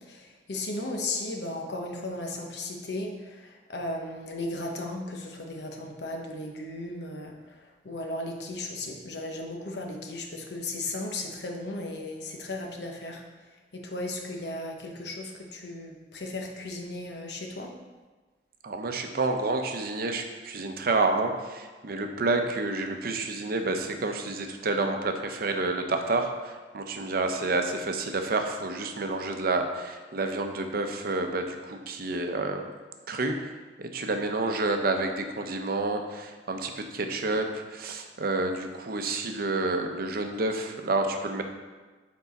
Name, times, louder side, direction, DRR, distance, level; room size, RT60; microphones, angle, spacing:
voice 1, 0.0-13.2 13.7-17.8, left 2 dB, 70° left, 2 dB, 1.0 m, -36 dB
voice 2, 18.6-32.7 33.1-33.5 33.8-41.4, right 3 dB, 60° right, 5 dB, 0.7 m, -29 dB
7.1 x 4.6 x 4.1 m, 1.3 s
head